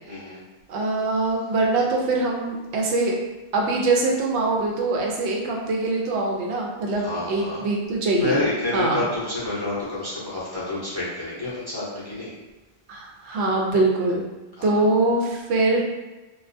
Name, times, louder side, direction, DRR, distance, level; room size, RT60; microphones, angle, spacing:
voice 1, 0.0-0.4 7.0-7.6 8.2-12.3 14.6-14.7, left 2 dB, 30° left, -9 dB, 0.5 m, -28 dB
voice 2, 0.7-3.1 3.5-8.4 8.7-9.1 12.9-14.2 14.6-15.8, right 2 dB, 90° right, -1 dB, 0.8 m, -23 dB
2.3 x 2.2 x 2.5 m, 1.1 s
omnidirectional pair, 1.1 m